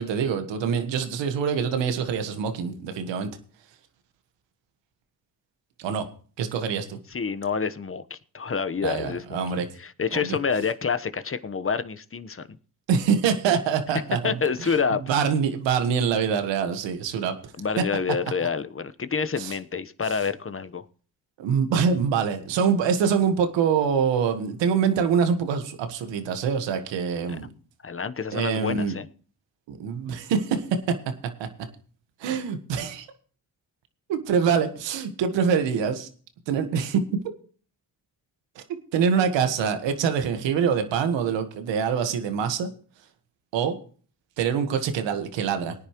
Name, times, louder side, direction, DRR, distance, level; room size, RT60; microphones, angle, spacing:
voice 1, 0.0-3.3 5.8-6.0 6.4-7.0 8.8-9.6 10.1-10.4 12.9-14.4 15.1-17.3 19.4-19.5 21.4-27.5 28.3-28.9 29.7-30.6 31.4-31.5 32.2-33.1 34.1-36.1 36.5-37.0 38.5-38.6 38.9-42.7 43.5-43.7 44.4-45.7, right 6 dB, 90° right, 8 dB, 1.5 m, -25 dB
voice 2, 7.1-12.5 14.2-15.0 17.6-20.9 27.3-27.4 27.8-29.1, left 5 dB, 30° left, 12 dB, 1.1 m, -28 dB
19.0 x 9.9 x 3.1 m, 0.41 s
supercardioid pair, 55°, 42 cm